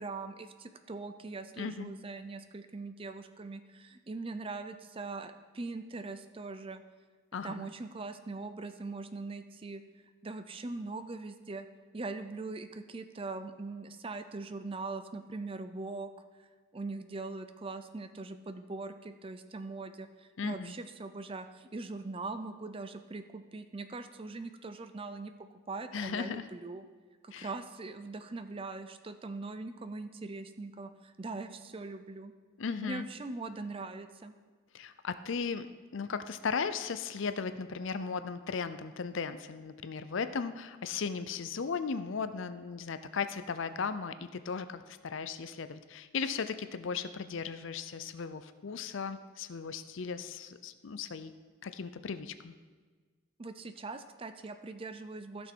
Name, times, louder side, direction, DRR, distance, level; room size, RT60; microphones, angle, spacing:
voice 1, 0.0-6.8 7.4-9.8 10.2-11.7 11.9-16.1 16.7-25.3 25.7-26.9 27.2-32.3 32.8-34.3 53.4-55.5, right 3 dB, 25° right, 10 dB, 0.4 m, -41 dB
voice 2, 1.6-1.9 7.3-7.7 20.4-20.7 25.9-26.5 27.3-27.5 32.6-33.1 34.7-35.7 35.9-51.3 51.6-52.5, left 5 dB, 60° left, 12 dB, 0.5 m, -36 dB
14.5 x 6.3 x 4.5 m, 1.4 s
head